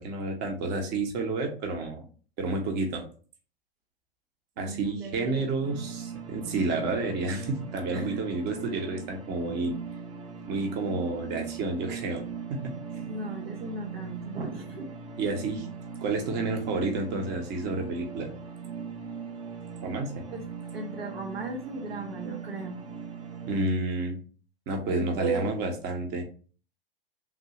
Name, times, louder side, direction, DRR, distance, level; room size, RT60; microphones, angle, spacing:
voice 1, 0.0-2.0 2.4-3.0 4.6-9.7 10.5-12.2 12.5-12.6 12.9-13.1 15.2-15.7 16.0-18.3 19.8-20.1 23.5-24.2 24.7-26.2, right 3 dB, 35° right, 3 dB, 0.9 m, -30 dB
voice 2, 4.6-5.5 7.9-8.2 13.1-14.9 20.3-20.4 20.7-22.8 24.9-25.6, right 3 dB, 85° right, 1 dB, 0.9 m, -36 dB
sound 1, 5.6-23.6, right 6 dB, 15° right, 0.4 m, -40 dB
3.6 x 2.7 x 2.8 m, 0.39 s
hypercardioid pair, 95°, 29 cm